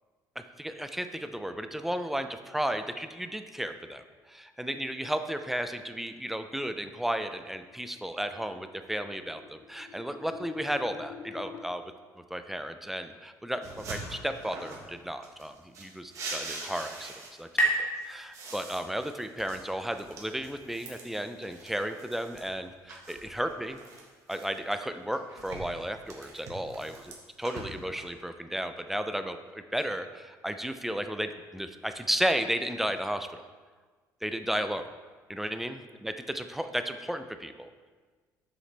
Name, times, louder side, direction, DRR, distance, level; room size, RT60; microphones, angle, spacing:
voice 1, 0.4-11.8 12.3-17.1 17.4-17.5 18.0-23.8 24.3-33.4 34.2-34.9 35.3-37.7, equal, 5° right, 8 dB, 0.3 m, -34 dB
sound 1, 6.9-11.6, left 6 dB, 65° left, 0.6 m, -48 dB
sound 2, 13.6-14.9 15.2-17.6 18.0-22.5 22.9-24.7 25.1-28.0, right 3 dB, 45° right, 1.4 m, -43 dB
sound 3, 16.1-19.5, right 1 dB, 25° left, 1.3 m, -33 dB
7.6 x 6.5 x 3.2 m, 1.4 s
cardioid pair, 145°, 7 cm